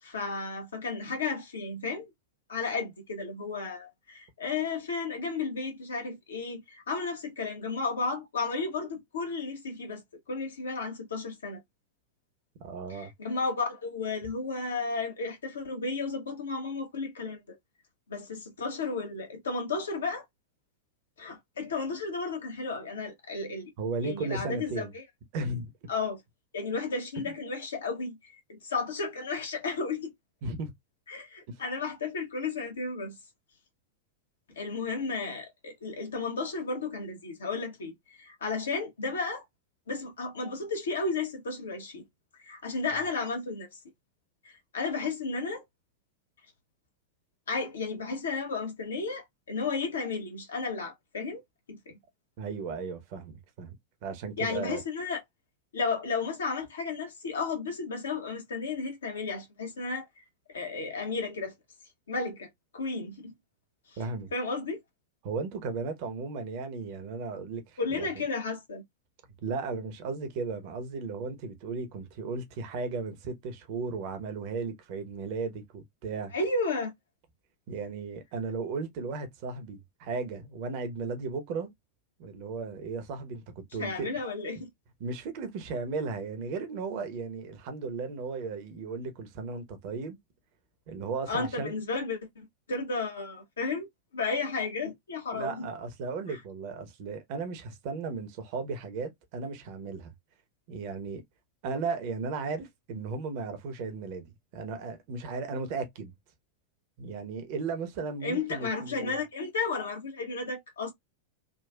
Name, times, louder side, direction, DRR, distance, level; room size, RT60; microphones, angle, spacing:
voice 1, 0.0-2.1 2.5-10.0 10.3-11.6 12.9-17.6 18.1-20.2 21.2-23.7 24.0-25.0 25.9-26.2 26.5-30.1 31.1-33.2 34.5-39.4 39.9-42.0 42.4-43.8 44.4-45.6 47.5-51.4 51.7-51.9 54.4-55.2 55.7-60.2 60.5-61.5 62.1-63.3 64.3-64.8 67.8-68.8 76.3-76.9 83.8-84.7 91.3-93.9 94.1-95.7 96.3-96.4 108.2-110.9, left 4 dB, 65° left, 1.1 m, -33 dB
voice 2, 12.6-13.1 23.8-24.9 25.3-25.7 27.2-27.3 30.4-30.7 31.5-31.6 52.4-53.7 54.0-54.8 64.0-64.3 65.2-68.1 69.4-76.3 77.7-81.7 82.2-83.4 83.7-84.1 85.0-90.2 90.9-91.8 95.3-100.1 100.7-101.2 101.6-104.3 104.5-106.1 107.0-109.2, right 4 dB, 45° right, 0.9 m, -35 dB
3.8 x 2.4 x 2.3 m
figure-of-eight pair, 90°, 0 cm